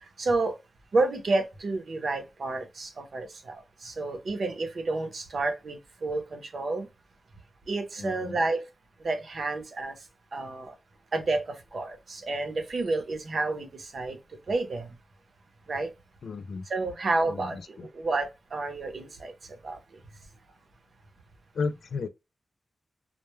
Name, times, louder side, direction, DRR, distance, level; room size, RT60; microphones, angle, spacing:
voice 1, 0.2-0.6 0.9-6.9 7.7-8.6 9.0-10.0 10.3-10.7 11.1-14.2 14.5-14.9 15.7-15.9 16.7-19.3 19.6-19.8, right 3 dB, 60° right, 0.7 m, -30 dB
voice 2, 8.0-8.4 16.2-16.7 17.3-17.9 21.5-22.1, left 4 dB, 80° left, 0.3 m, -34 dB
2.1 x 2.1 x 3.0 m
wide cardioid pair, 105°, 0 cm